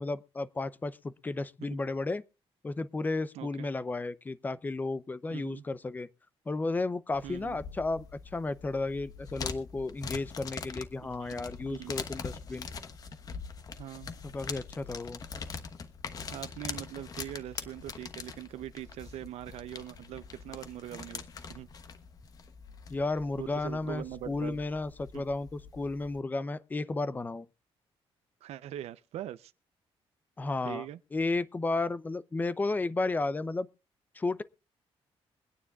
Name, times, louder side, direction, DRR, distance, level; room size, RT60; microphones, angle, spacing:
voice 1, 0.0-2.2 2.6-6.1 6.5-8.1 8.3-12.7 14.2-15.2 22.9-27.5 30.4-30.8 31.1-33.7 34.1-34.4, left 3 dB, 15° left, 0.6 m, -33 dB
voice 2, 3.3-3.7 5.3-5.6 7.2-7.6 11.0-12.0 13.8-14.2 16.3-21.2 21.5-21.7 23.4-24.6 25.1-25.2 28.4-29.5 30.6-31.0, right 12 dB, 85° right, 0.6 m, -42 dB
sound 1, 7.1-26.2, left 5 dB, 35° left, 1.1 m, -43 dB
24.0 x 9.7 x 2.4 m
cardioid pair, 170°, 10 cm